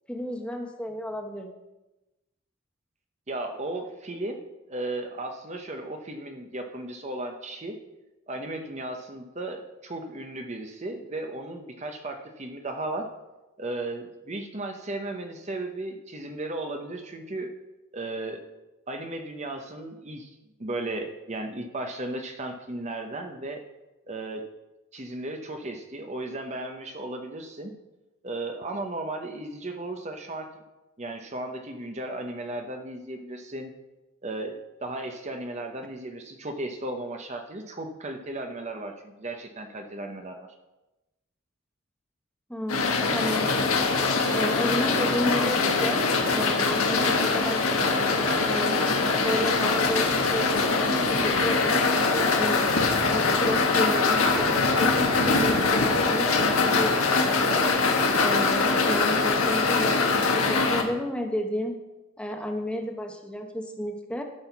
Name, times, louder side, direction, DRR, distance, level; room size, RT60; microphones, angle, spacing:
voice 1, 0.1-1.5 42.5-43.7 44.3-46.1 46.3-48.0 48.4-52.7 53.1-57.6 58.2-61.7 62.2-64.2, equal, 5° left, 3 dB, 1.0 m, -32 dB
voice 2, 3.3-4.4 4.7-7.8 8.3-13.1 13.6-17.5 17.9-18.5 18.9-20.3 20.6-23.6 24.1-24.4 24.9-27.7 28.2-30.5 31.0-33.7 34.2-40.5, right 2 dB, 30° right, 4 dB, 0.8 m, -35 dB
sound 1, 42.7-60.8, left 3 dB, 75° left, 1.5 m, -23 dB
12.0 x 6.3 x 5.9 m, 1.0 s
head